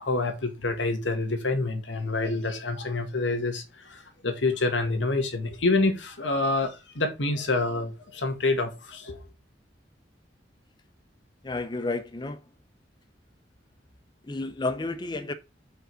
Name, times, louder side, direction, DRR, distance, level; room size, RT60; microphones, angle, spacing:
voice 1, 0.0-9.2, left 2 dB, 85° left, 1.9 m, -27 dB
voice 2, 11.4-12.5 14.2-15.3, left 2 dB, 25° left, 0.5 m, -31 dB
5.2 x 5.1 x 6.2 m
head